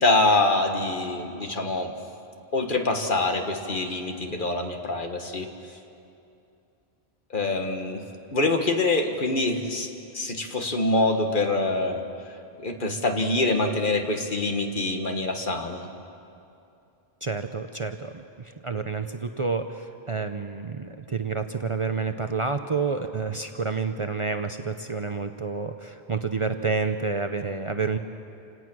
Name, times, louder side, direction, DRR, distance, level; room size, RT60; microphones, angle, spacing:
voice 1, 0.0-1.9 2.5-5.5 7.3-8.0 8.3-9.9 10.1-12.0 12.6-15.9, left 2 dB, 55° left, 4 dB, 1.6 m, -25 dB
voice 2, 17.2-28.0, right 4 dB, 35° right, 7 dB, 0.7 m, -29 dB
28.5 x 17.5 x 6.2 m, 2.7 s
omnidirectional pair, 1.0 m